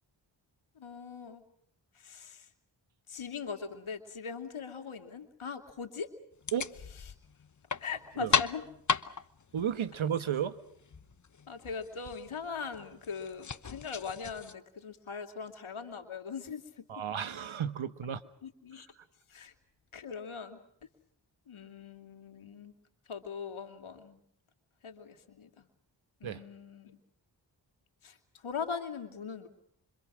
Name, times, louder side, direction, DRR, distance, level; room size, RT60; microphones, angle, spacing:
voice 1, 0.8-1.4 1.9-2.5 3.1-6.1 7.1-7.2 7.8-8.6 11.5-17.0 18.4-18.9 19.3-19.5 19.9-20.6 21.5-22.7 23.1-24.2 24.8-25.7 26.2-27.0 28.0-28.2 28.4-29.5, left 5 dB, 80° left, 5 dB, 2.7 m, -41 dB
sound 1, 6.3-14.5, left 6 dB, 35° left, 1.0 m, -36 dB
voice 2, 9.5-10.6 16.9-18.2 26.2-26.4, right 9 dB, 75° right, 12 dB, 1.5 m, -33 dB
26.0 x 26.0 x 6.3 m, 0.69 s
cardioid pair, 45°, 48 cm